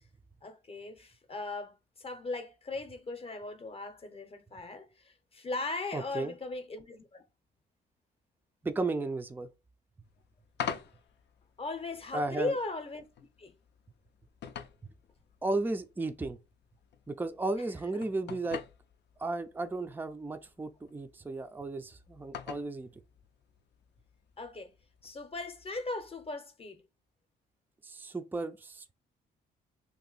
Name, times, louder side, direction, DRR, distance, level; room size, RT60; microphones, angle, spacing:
voice 1, 0.4-7.3 11.6-13.1 13.4-13.5 17.9-18.0 24.4-24.7 25.0-26.8, left 3 dB, 30° left, 0.8 m, -38 dB
voice 2, 5.9-6.3 8.6-9.5 12.1-12.5 15.4-16.4 17.1-18.6 19.2-22.9 27.8-28.8, right 2 dB, 10° right, 0.4 m, -34 dB
sound 1, 10.0-26.3, left 8 dB, 60° left, 0.5 m, -47 dB
2.8 x 2.6 x 4.0 m
cardioid pair, 90°, 20 cm